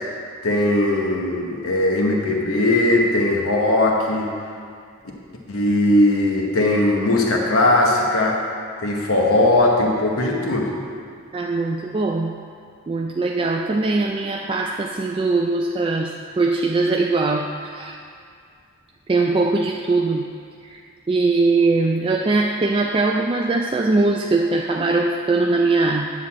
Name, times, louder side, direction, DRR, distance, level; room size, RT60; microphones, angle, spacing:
voice 1, 0.4-4.3 5.5-8.4 8.8-10.7, left 1 dB, 65° left, -1 dB, 1.1 m, -19 dB
voice 2, 11.3-12.4 12.9-18.0 19.1-20.3 20.6-20.8 21.1-26.1, right 3 dB, 25° right, 1 dB, 0.3 m, -21 dB
9.8 x 4.0 x 7.3 m, 2.3 s
head